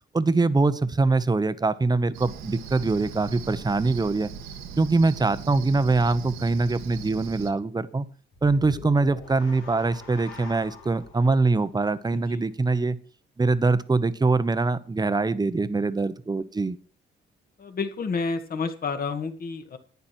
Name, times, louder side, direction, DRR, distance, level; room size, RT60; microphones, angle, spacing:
voice 1, 0.1-4.3 4.8-8.1 8.4-13.0 13.4-16.8, right 3 dB, 20° right, 13 dB, 1.0 m, -23 dB
Cricket, 2.1-7.5, right 7 dB, 85° right, 1.8 m, -39 dB
sound 1, 8.3-12.7, left 3 dB, 80° left, 3.9 m, -45 dB
voice 2, 17.6-19.8, left 4 dB, 50° left, 7 dB, 2.0 m, -30 dB
11.5 x 9.5 x 4.5 m, 0.42 s
cardioid pair, 90°, 20 cm